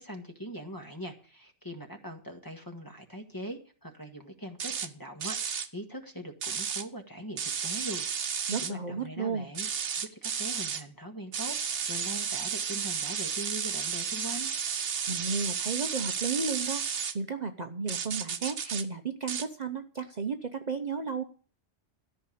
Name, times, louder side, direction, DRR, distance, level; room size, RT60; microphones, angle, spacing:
voice 1, 0.0-9.7 10.0-14.5, right 1 dB, 20° left, 4 dB, 1.5 m, -42 dB
sound 1, 4.6-4.9 5.2-5.7 6.4-6.8 7.4-8.7 9.5-10.8 11.3-17.1 17.9-18.8 19.3-19.5, right 7 dB, 80° right, 1.2 m, -32 dB
voice 2, 8.5-9.5 15.1-16.9 17.1-21.2, right 5 dB, 40° right, 6 dB, 0.9 m, -33 dB
13.5 x 5.7 x 8.5 m, 0.39 s
omnidirectional pair, 1.2 m